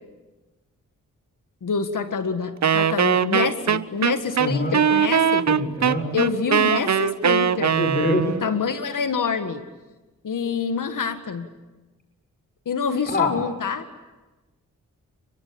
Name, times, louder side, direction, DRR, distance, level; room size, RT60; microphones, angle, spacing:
voice 1, 1.6-5.5 6.1-7.8 8.4-9.6 10.2-11.5 12.7-13.9, left 6 dB, 65° left, 9 dB, 1.9 m, -26 dB
Wind instrument woodwind instrument, 2.6-8.4, right 8 dB, 55° right, 0.9 m, -21 dB
voice 2, 4.4-4.8 5.5-6.1 7.7-8.3 13.1-13.3, left 1 dB, 30° left, 5 dB, 5.5 m, -24 dB
29.0 x 22.5 x 8.8 m, 1.1 s
supercardioid pair, 45°, 34 cm